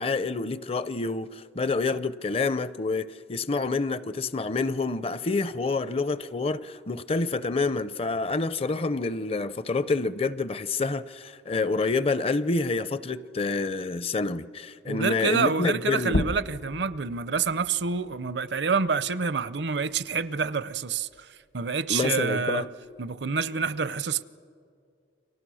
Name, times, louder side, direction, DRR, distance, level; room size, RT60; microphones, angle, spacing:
voice 1, 0.0-16.2 21.9-22.6, left 3 dB, 30° left, 0.5 m, -28 dB
voice 2, 14.8-21.3 21.5-22.6 23.0-24.2, right 5 dB, 65° right, 0.6 m, -27 dB
sound 1, 16.0-21.2 21.6-23.4, left 1 dB, 55° left, 0.9 m, -36 dB
30.0 x 25.0 x 6.3 m
head